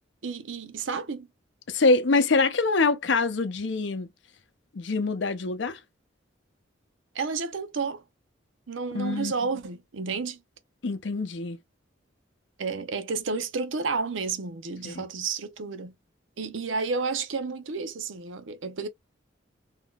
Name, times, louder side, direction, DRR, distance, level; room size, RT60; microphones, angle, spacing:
voice 1, 0.2-1.3 7.1-8.0 8.7-10.4 12.6-15.9 16.4-18.9, right 4 dB, 75° right, 0.6 m, -31 dB
voice 2, 1.7-4.1 4.7-5.8 8.9-9.3 10.8-11.6 14.8-15.0, left 3 dB, 65° left, 0.6 m, -24 dB
3.6 x 2.8 x 2.3 m
head